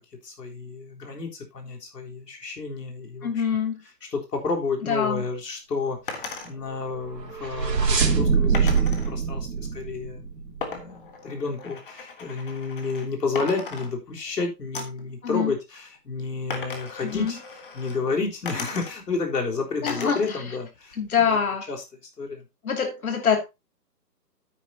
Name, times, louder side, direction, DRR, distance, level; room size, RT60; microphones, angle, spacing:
voice 1, 0.2-3.3 4.1-17.4 17.7-21.0 21.3-21.4 21.7-21.8 22.2-22.4, left 4 dB, 75° left, 3.8 m, -31 dB
voice 2, 3.2-3.8 4.8-5.3 15.2-15.5 17.0-17.4 19.8-20.4 21.0-21.7 22.6-23.4, left 7 dB, 60° left, 2.7 m, -25 dB
sound 1, 6.1-6.5 8.5-9.1 10.6-13.1 13.3-14.3 14.7-15.1 16.5-18.0 18.4-19.2 19.9-20.4 20.7-21.5, left 4 dB, 30° left, 1.5 m, -37 dB
sound 2, 7.0-10.6, right 5 dB, 90° right, 3.0 m, -23 dB
9.6 x 9.3 x 2.8 m
hypercardioid pair, 170°, 49 cm